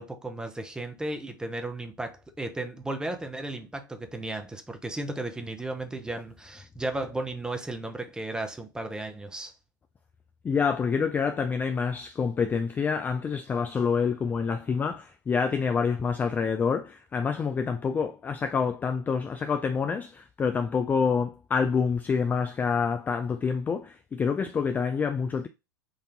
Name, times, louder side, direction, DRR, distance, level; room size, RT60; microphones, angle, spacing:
voice 1, 0.0-9.5, right 2 dB, 5° right, 0.8 m, -35 dB
voice 2, 10.4-25.5, left 5 dB, 15° left, 0.3 m, -27 dB
4.0 x 2.7 x 3.5 m
figure-of-eight pair, 85°, 11 cm